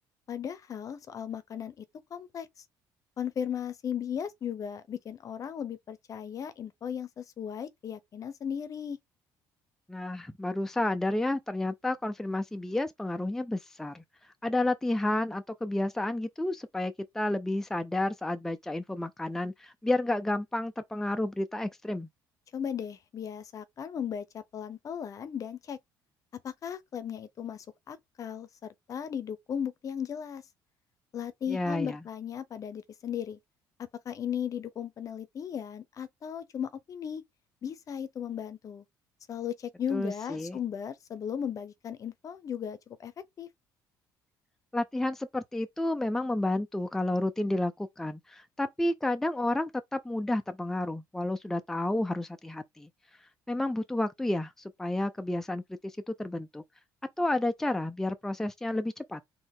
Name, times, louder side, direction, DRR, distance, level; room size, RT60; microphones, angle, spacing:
voice 1, 0.3-1.8 2.1-2.5 3.2-9.0 22.5-25.8 26.4-30.4 31.1-33.4 33.8-37.2 37.6-38.8 39.3-43.1 43.4-43.5, left 8 dB, 45° left, 0.8 m, -36 dB
voice 2, 9.9-14.0 14.4-22.1 31.5-32.0 39.9-40.6 44.7-52.9 53.5-56.6 57.2-59.2, left 1 dB, 5° left, 0.5 m, -31 dB
4.2 x 2.8 x 3.7 m
cardioid pair, 105°, 8 cm